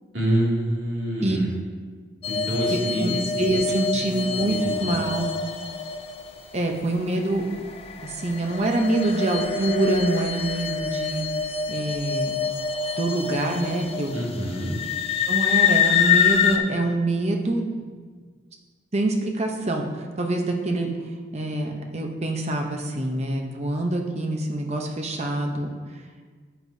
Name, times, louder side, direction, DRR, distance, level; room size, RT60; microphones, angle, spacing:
voice 1, 0.1-1.5 2.3-3.2 4.0-4.9 14.1-14.7, equal, 75° right, -5 dB, 2.4 m, -26 dB
sound 1, 2.2-6.6 7.2-16.6, left 6 dB, 30° left, 0.5 m, -26 dB
voice 2, 3.0-5.3 6.5-7.5 8.0-11.3 11.7-12.3 13.0-14.2 15.3-17.8 18.9-19.9 20.2-20.9 21.3-25.7, right 2 dB, 35° right, 3 dB, 0.8 m, -25 dB
9.4 x 8.0 x 2.7 m, 1.5 s
head